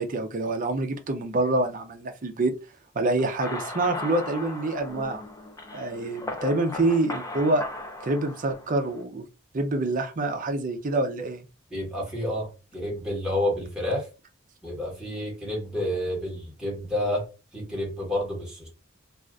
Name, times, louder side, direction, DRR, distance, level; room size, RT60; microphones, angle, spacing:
voice 1, 0.0-2.5 2.9-5.2 5.7-7.7 8.0-9.2 9.5-11.4, right 2 dB, 40° right, 0.5 m, -26 dB
sound 1, 3.2-9.0, left 2 dB, 15° left, 0.4 m, -37 dB
voice 2, 11.7-14.1 14.6-17.3 17.5-18.7, left 1 dB, 5° right, 1.1 m, -29 dB
2.5 x 2.4 x 3.3 m
head